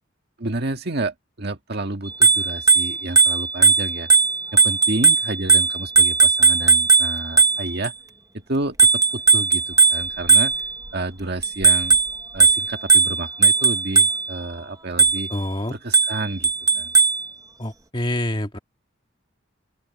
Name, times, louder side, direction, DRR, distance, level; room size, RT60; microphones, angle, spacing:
voice 1, 0.4-4.1 4.5-7.9 8.3-10.5 10.9-12.0 12.3-15.3 15.7-16.9, right 2 dB, 55° right, 1.8 m, -30 dB
Bicycle bell, 2.1-7.9 8.8-10.9 11.4-14.4 15.0-15.4 15.9-17.3, right 4 dB, 15° right, 0.9 m, -17 dB
voice 2, 15.3-15.8 17.6-18.6, left 1 dB, 25° left, 2.1 m, -26 dB
open air
head